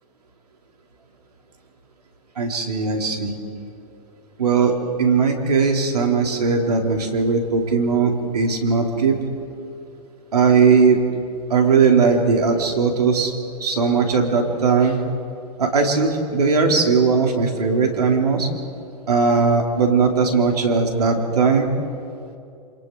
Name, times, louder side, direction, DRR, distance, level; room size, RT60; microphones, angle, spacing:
voice 1, 2.4-3.4 4.4-9.2 10.3-11.0 11.5-13.3 13.6-15.0 15.6-18.5 19.1-21.7, right 5 dB, 75° right, 2 dB, 3.3 m, -18 dB
27.0 x 27.0 x 3.9 m, 2.5 s
figure-of-eight pair, 105°, 20 cm